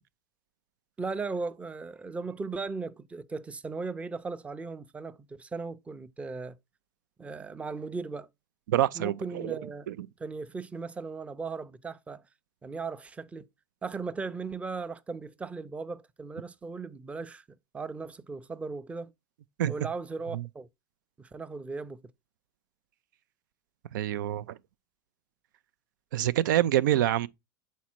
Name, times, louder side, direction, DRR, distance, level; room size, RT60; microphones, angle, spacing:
voice 1, 1.0-6.6 7.2-8.3 8.9-9.9 10.2-12.2 12.6-13.5 13.8-17.4 17.7-19.1 19.7-20.7 21.2-22.0, right 4 dB, 15° right, 0.5 m, -37 dB
voice 2, 8.7-9.6 9.9-10.0 19.6-19.7 20.3-20.4 23.9-24.6 26.1-27.3, right 12 dB, 85° right, 0.4 m, -26 dB
7.3 x 4.1 x 4.4 m
supercardioid pair, 115°, 10 cm